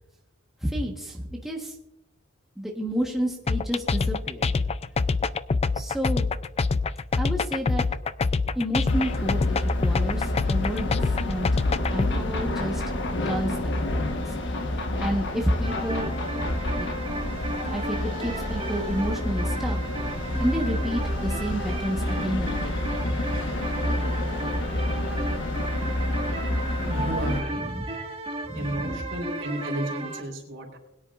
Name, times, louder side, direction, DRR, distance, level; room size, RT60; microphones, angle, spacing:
voice 1, 0.6-1.7 2.6-4.5 5.7-6.3 7.2-7.8 8.5-11.5 11.9-12.8 13.2-14.3 15.0-16.1 16.4-16.9 17.2-17.4 17.7-19.8 20.4-23.2 24.5-24.8 27.5-27.8 28.5-28.9, equal, ahead, -1 dB, 1.3 m, -30 dB
sound 1, 3.5-12.1, left 4 dB, 30° left, 0.4 m, -25 dB
sound 2, 8.9-27.4, left 1 dB, 60° left, 1.2 m, -29 dB
sound 3, 15.6-30.2, right 2 dB, 30° right, 1.6 m, -35 dB
voice 2, 26.9-27.6 28.5-30.8, right 1 dB, 60° right, 2 dB, 3.7 m, -32 dB
21.5 x 10.0 x 2.5 m, 0.91 s
head